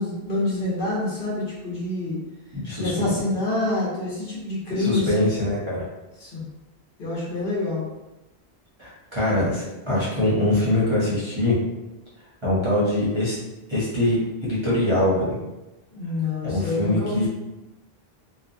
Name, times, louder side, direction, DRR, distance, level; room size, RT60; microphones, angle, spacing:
voice 1, 0.0-2.2 2.8-5.2 6.2-6.4 7.0-7.8 15.9-17.3, left 2 dB, 60° left, -6 dB, 1.0 m, -27 dB
voice 2, 2.5-3.1 4.8-5.8 8.8-11.6 12.4-13.3 13.7-15.4 16.4-17.3, left 1 dB, 30° right, -9 dB, 0.7 m, -23 dB
2.6 x 2.2 x 2.6 m, 0.99 s
omnidirectional pair, 1.1 m